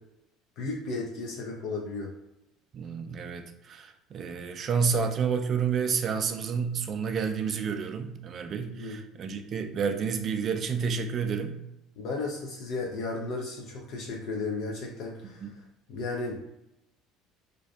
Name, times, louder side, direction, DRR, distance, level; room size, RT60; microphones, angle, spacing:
voice 1, 0.6-2.1 8.7-9.0 12.0-15.5 15.9-16.5, left 3 dB, 65° left, -2 dB, 0.4 m, -34 dB
voice 2, 2.7-11.6 15.4-15.5, right 6 dB, 45° right, 6 dB, 0.3 m, -30 dB
2.5 x 2.3 x 2.3 m, 0.87 s
supercardioid pair, 80°, 0 cm